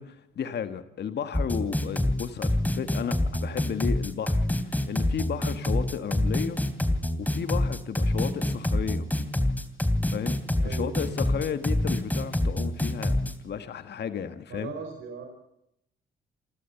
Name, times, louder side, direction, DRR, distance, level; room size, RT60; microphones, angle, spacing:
voice 1, 0.0-6.6 7.2-9.1 10.1-14.7, left 8 dB, 60° left, 10 dB, 1.6 m, -33 dB
sound 1, 1.3-13.3, left 1 dB, 10° left, 2.8 m, -26 dB
voice 2, 10.6-11.1 14.5-15.2, right 5 dB, 75° right, 4 dB, 4.6 m, -38 dB
28.0 x 13.0 x 7.1 m, 0.78 s
cardioid pair, 80°, 20 cm